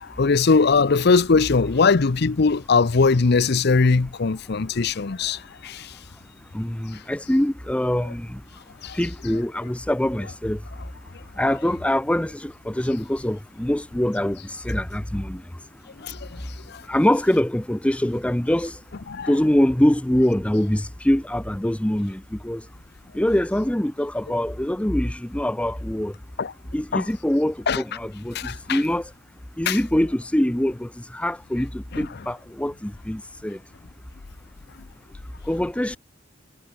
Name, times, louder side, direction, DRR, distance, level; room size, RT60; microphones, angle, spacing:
voice 1, 0.0-5.9 8.8-9.0 16.0-16.2 16.7-16.8 19.1-19.3 26.4-26.5 26.9-27.1 27.7-27.8 28.3-28.8 29.7-29.8 31.9-32.0, left 4 dB, 60° left, 0.7 m, -20 dB
voice 2, 6.5-8.4 8.9-10.6 11.4-15.4 16.9-18.7 19.3-22.6 23.1-26.1 26.7-29.0 29.6-33.6 35.5-36.0, left 1 dB, 5° left, 0.6 m, -24 dB
head